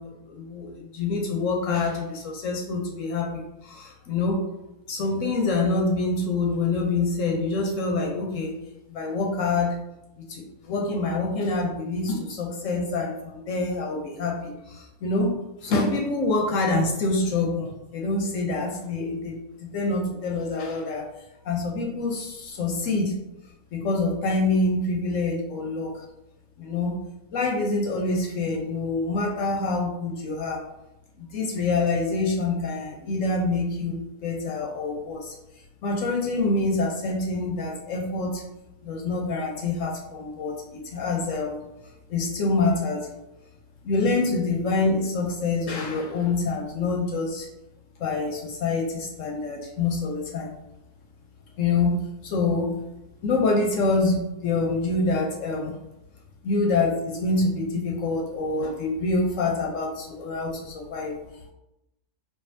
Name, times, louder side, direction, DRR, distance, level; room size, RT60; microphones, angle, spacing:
voice 1, 0.0-4.4 4.9-8.6 8.9-9.7 10.2-15.3 15.6-21.1 21.4-23.2 23.7-26.0 26.6-27.0 27.3-30.6 31.2-34.0 34.2-35.3 35.8-38.4 38.8-41.6 42.1-43.1 43.8-47.5 48.0-50.5 51.6-52.0 52.2-52.8 53.2-55.8 56.4-61.2, left 3 dB, 65° left, 0 dB, 0.9 m, -26 dB
4.8 x 2.4 x 2.6 m, 0.91 s
omnidirectional pair, 1.6 m